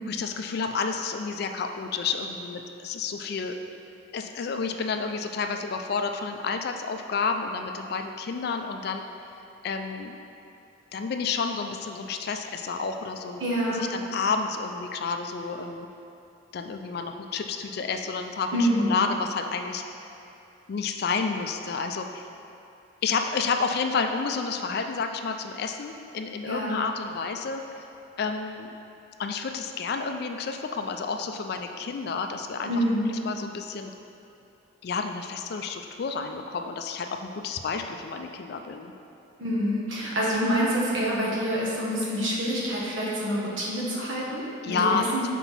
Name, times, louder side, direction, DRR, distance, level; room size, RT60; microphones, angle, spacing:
voice 1, 0.1-3.6 4.1-9.0 9.6-10.2 10.9-13.4 13.7-15.9 16.5-19.8 20.7-22.3 23.0-27.8 28.2-28.7 29.2-32.8 33.1-33.9 34.8-38.9 44.6-45.3, left 5 dB, 50° left, 5 dB, 0.3 m, -30 dB
voice 2, 13.4-13.9 18.5-19.0 26.5-26.8 32.6-33.1 39.4-45.3, equal, 70° right, -5 dB, 1.2 m, -27 dB
5.9 x 4.5 x 4.1 m, 2.7 s
head